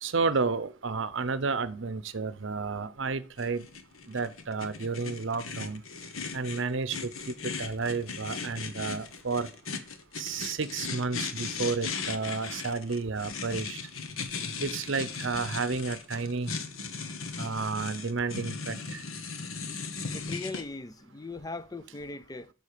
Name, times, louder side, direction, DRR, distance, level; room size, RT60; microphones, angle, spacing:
voice 1, 0.0-3.7 4.1-5.8 6.3-9.5 10.2-13.8 14.6-16.5 17.4-19.0, right 4 dB, 65° right, 0.7 m, -31 dB
sound 1, 3.4-20.6, left 4 dB, 85° left, 1.3 m, -37 dB
voice 2, 20.1-22.5, left 3 dB, 20° left, 0.4 m, -40 dB
8.1 x 6.4 x 6.7 m
head